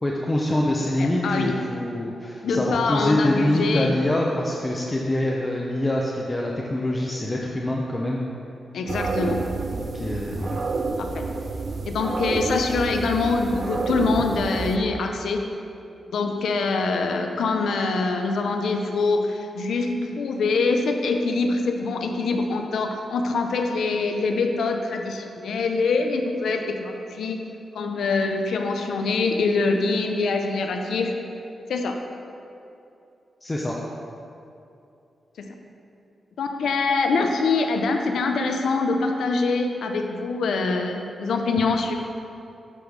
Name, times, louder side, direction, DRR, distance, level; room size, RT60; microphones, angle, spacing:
voice 1, 0.0-8.2 9.9-10.6 33.4-33.8, left 1 dB, 20° left, -2 dB, 0.6 m, -25 dB
voice 2, 1.0-1.5 2.4-3.9 8.7-9.5 11.0-11.3 11.9-15.5 16.1-27.4 27.7-31.3 31.7-32.0 35.4-35.5 36.4-41.9, left 3 dB, 85° left, 4 dB, 0.6 m, -24 dB
sound 1, 8.9-14.8, right 3 dB, 45° right, 0.3 m, -29 dB
8.2 x 3.1 x 5.3 m, 2.6 s
cardioid pair, 95°, 0 cm